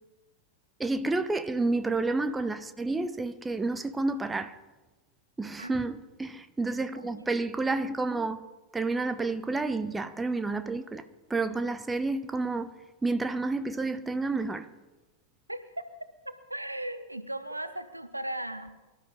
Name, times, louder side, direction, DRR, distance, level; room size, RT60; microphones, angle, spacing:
voice 1, 0.8-4.6 5.4-8.4 8.7-11.0 11.3-12.7 13.0-14.7, right 3 dB, 10° right, 0.9 m, -30 dB
voice 2, 6.9-7.3 15.5-15.8 16.2-18.8, right 1 dB, 85° right, 1.1 m, -37 dB
23.5 x 12.5 x 3.8 m
figure-of-eight pair, 90°, 0 cm